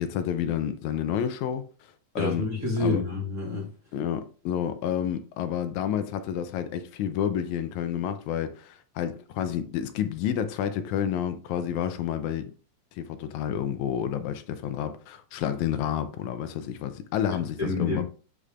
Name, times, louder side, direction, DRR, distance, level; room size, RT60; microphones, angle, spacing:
voice 1, 0.0-1.6 2.2-2.5 2.8-3.0 3.9-12.5 12.9-18.0, left 9 dB, 85° left, 2.0 m, -29 dB
voice 2, 2.2-3.7 17.3-18.0, left 2 dB, 35° right, 1.9 m, -28 dB
8.4 x 5.0 x 2.5 m
omnidirectional pair, 3.3 m